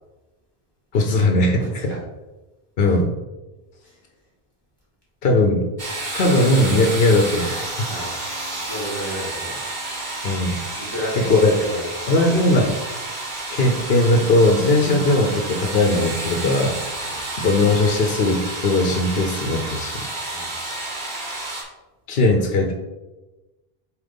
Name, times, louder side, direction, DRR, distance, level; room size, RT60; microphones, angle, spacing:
voice 1, 0.9-1.9 2.8-3.1 5.2-5.7 6.1-7.9 10.2-10.6 11.2-11.5 12.1-12.7 13.5-16.8 17.4-20.0 22.1-22.7, left 2 dB, 65° left, 2 dB, 0.9 m, -19 dB
voice 2, 1.5-2.0 3.8-4.0 7.9-8.2 8.5-9.5 10.8-12.5 17.0-17.2 20.3-20.5, equal, 25° right, -8 dB, 2.3 m, -32 dB
sound 1, 5.8-21.6, right 2 dB, 45° right, 1.7 m, -30 dB
7.6 x 3.0 x 5.2 m, 1.1 s
omnidirectional pair, 1.0 m